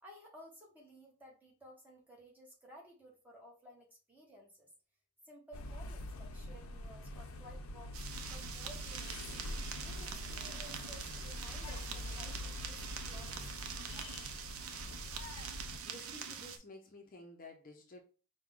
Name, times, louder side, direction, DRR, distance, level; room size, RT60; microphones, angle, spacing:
voice 1, 0.0-4.7 5.2-9.4 9.8-13.8, equal, 10° right, -3 dB, 1.2 m, -56 dB
sound 1, 5.5-15.8, left 1 dB, 85° left, 0.6 m, -45 dB
sound 2, 7.9-16.6, right 7 dB, 85° right, 0.5 m, -45 dB
voice 2, 15.8-18.0, left 2 dB, 40° left, 2 dB, 0.6 m, -52 dB
4.6 x 2.2 x 3.7 m, 0.36 s
head